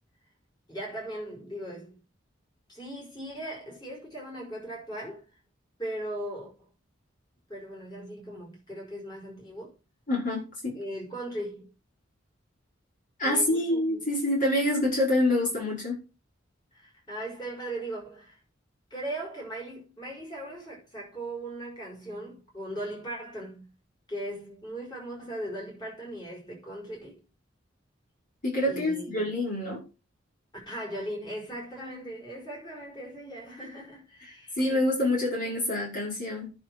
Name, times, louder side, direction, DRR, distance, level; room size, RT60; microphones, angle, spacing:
voice 1, 0.7-2.0 2.7-5.2 5.8-6.7 7.5-9.7 10.7-11.7 13.2-14.0 16.7-18.4 18.9-23.7 24.1-27.2 28.7-29.3 30.7-34.8, right 1 dB, 25° left, 5.6 m, -38 dB
voice 2, 10.1-10.8 13.2-16.0 28.4-29.8 34.2-36.5, left 1 dB, 45° left, 5.5 m, -27 dB
9.9 x 6.3 x 6.4 m
head